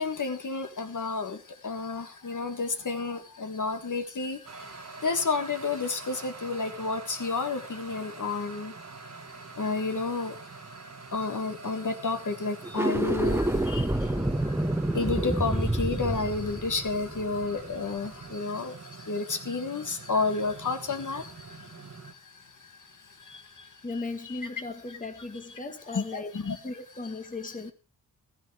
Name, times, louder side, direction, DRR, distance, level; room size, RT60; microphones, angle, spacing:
voice 1, 0.0-8.7 9.5-10.4 10.7-14.6 14.9-24.4 25.9-26.6, left 4 dB, 55° left, 1.7 m, -31 dB
sound 1, 4.4-22.1, right 4 dB, 45° right, 1.4 m, -46 dB
sound 2, 12.6-17.9, right 1 dB, 5° right, 1.0 m, -28 dB
voice 2, 23.8-26.3 26.6-27.7, left 3 dB, 20° left, 1.3 m, -37 dB
13.0 x 9.8 x 4.8 m
cardioid pair, 75°, 38 cm